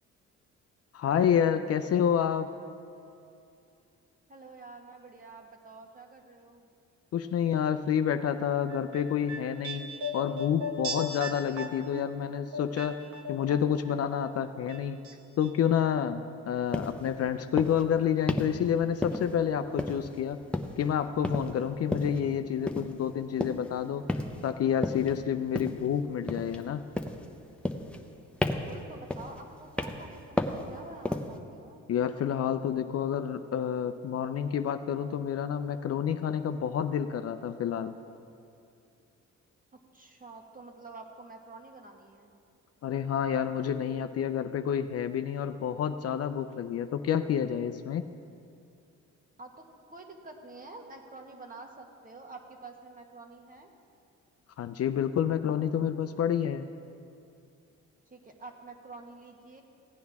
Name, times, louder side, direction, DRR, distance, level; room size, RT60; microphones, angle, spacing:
voice 1, 0.9-2.5 7.1-13.0 13.3-15.0 15.4-20.4 20.8-24.0 24.4-26.8 31.9-37.9 42.8-48.1 54.6-56.7, left 8 dB, 55° left, 9 dB, 0.5 m, -29 dB
voice 2, 4.3-6.7 28.4-31.8 39.9-42.3 49.4-53.7 58.1-59.6, right 3 dB, 30° right, 2 dB, 1.5 m, -48 dB
sound 1, 8.7-13.9 14.2-15.1 15.4-15.5, left 2 dB, 65° right, 1.2 m, -37 dB
sound 2, 16.7-17.0 17.6-17.8 18.3-18.6 19.0-19.4 19.8-20.2 20.5-20.9 21.2-21.5 21.9-22.2 22.7-22.9 23.4-23.7 24.1-24.4 24.8-25.1 25.5-25.9 26.3-26.7 27.0-27.3 27.6-28.1 28.4-28.8 29.1-29.4 29.8-30.1 30.4-30.7 31.0-31.4, left 1 dB, 5° left, 0.7 m, -32 dB
16.5 x 9.4 x 3.6 m, 2.5 s
cardioid pair, 90°, 30 cm